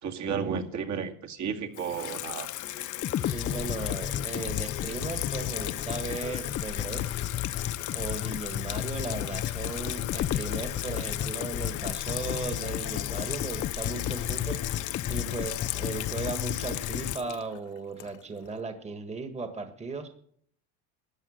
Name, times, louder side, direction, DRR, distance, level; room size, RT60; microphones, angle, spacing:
voice 1, 0.0-2.5, right 6 dB, 50° right, 3 dB, 2.3 m, -32 dB
Water tap faucet / Sink (filling or washing), 1.7-18.5, left 15 dB, 55° left, 1.0 m, -36 dB
sound 1, 3.0-17.2, left 11 dB, 35° left, 0.5 m, -33 dB
voice 2, 3.2-7.1 7.9-20.1, right 4 dB, 20° right, 7 dB, 1.6 m, -37 dB
13.5 x 10.0 x 6.6 m, 0.62 s
supercardioid pair, 110°, 35 cm